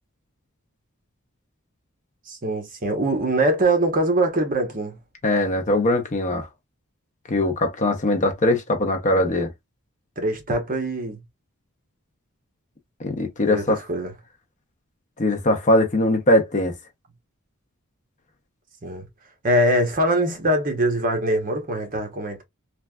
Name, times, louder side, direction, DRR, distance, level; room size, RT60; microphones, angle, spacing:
voice 1, 2.3-5.0 10.2-11.2 13.4-14.1 18.8-19.1 19.4-22.4, right 1 dB, 40° right, 0.9 m, -23 dB
voice 2, 5.2-6.5 7.3-9.5 13.0-13.8 15.2-16.8, left 1 dB, 35° left, 0.7 m, -21 dB
3.2 x 2.4 x 2.2 m
head